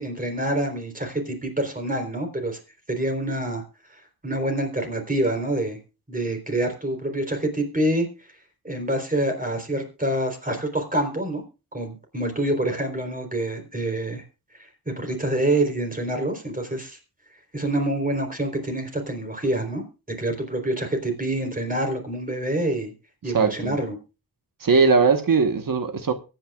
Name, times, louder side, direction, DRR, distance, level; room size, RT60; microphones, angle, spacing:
voice 1, 0.0-2.6 2.9-3.6 4.2-5.8 6.1-8.1 8.6-11.4 11.7-14.2 14.9-17.0 17.5-19.8 20.2-22.9 23.2-24.0, right 1 dB, 20° right, 4.0 m, -26 dB
voice 2, 23.3-23.8 24.6-26.1, right 4 dB, 60° right, 1.3 m, -19 dB
23.0 x 9.1 x 2.4 m
wide cardioid pair, 135°, 37 cm